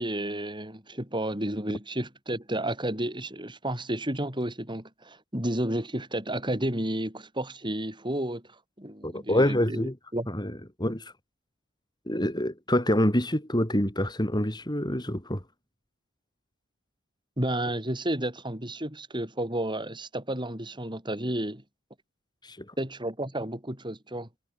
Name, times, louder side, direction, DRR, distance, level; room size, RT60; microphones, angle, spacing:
voice 1, 0.0-8.4 8.8-9.8 10.1-10.3 17.4-21.6 22.8-24.3, right 1 dB, 20° right, 7.7 m, -31 dB
voice 2, 9.0-10.0 10.3-11.1 12.1-15.4 22.4-22.7, left 1 dB, 20° left, 5.2 m, -26 dB
head